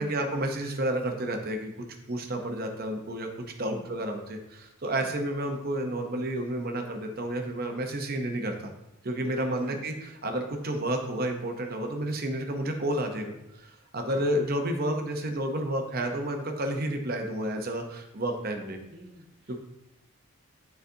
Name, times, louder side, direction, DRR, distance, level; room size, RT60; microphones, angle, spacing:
voice 1, 0.0-1.7 2.1-3.3 3.6-8.7 9.0-18.8 19.5-19.6, right 1 dB, 45° right, 4 dB, 0.7 m, -31 dB
voice 2, 9.4-9.8 18.6-19.6, equal, 25° right, -2 dB, 1.1 m, -45 dB
9.1 x 4.0 x 2.7 m, 0.89 s
head